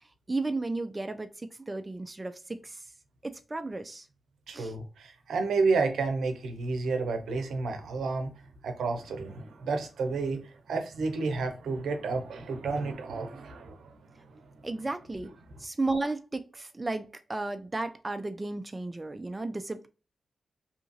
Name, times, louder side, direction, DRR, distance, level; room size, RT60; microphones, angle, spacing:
voice 1, 0.3-2.8 3.2-4.1 4.5-4.7 14.6-15.3 15.6-19.9, right 2 dB, 25° right, 0.3 m, -34 dB
voice 2, 4.5-8.3 8.6-14.6, right 4 dB, 85° right, 0.6 m, -31 dB
2.8 x 2.5 x 2.6 m
cardioid pair, 60°, 0 cm